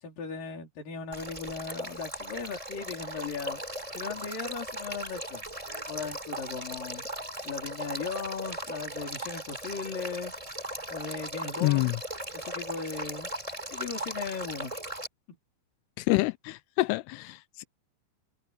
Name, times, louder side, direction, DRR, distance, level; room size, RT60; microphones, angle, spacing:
voice 1, 0.0-3.6 3.9-5.4 5.9-7.0 7.4-10.3 10.9-11.9 12.3-13.3 13.7-14.8, left 5 dB, 50° left, 5.7 m, -37 dB
Male speech man speaking / Stream / Trickle dribble, 1.1-15.1, right 1 dB, 10° right, 3.4 m, -38 dB
voice 2, 11.6-12.0 16.0-17.6, left 22 dB, 85° left, 2.4 m, -27 dB
omnidirectional pair, 5.1 m